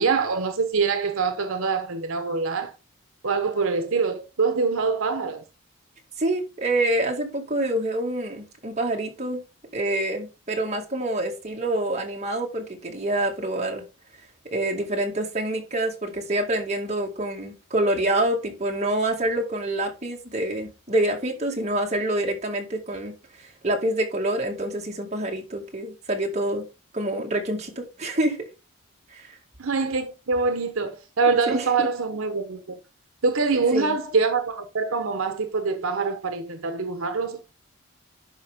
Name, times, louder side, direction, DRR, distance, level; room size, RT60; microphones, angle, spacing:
voice 1, 0.0-2.7 3.2-5.4 29.6-32.8 33.2-37.4, right 4 dB, 70° right, 0.9 m, -24 dB
voice 2, 6.2-9.4 9.7-13.8 14.5-26.7 26.9-28.5 29.1-29.4 31.5-31.9 33.7-34.0, right 1 dB, 30° right, 2.1 m, -26 dB
11.5 x 5.1 x 3.6 m
head